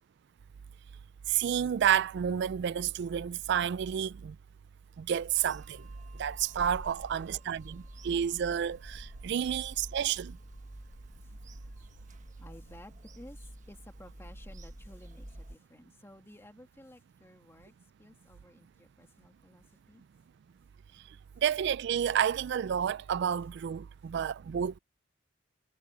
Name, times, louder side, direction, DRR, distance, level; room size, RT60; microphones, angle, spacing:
voice 1, 1.3-4.4 5.0-5.9 6.2-10.4 21.4-24.8, right 9 dB, 60° right, 0.3 m, -30 dB
Bird vocalization bird call bird song / Telephone, 5.3-15.6, right 1 dB, 40° right, 1.5 m, -48 dB
voice 2, 7.1-8.1 11.2-11.3 11.6-20.0, left 1 dB, 15° left, 2.4 m, -55 dB
head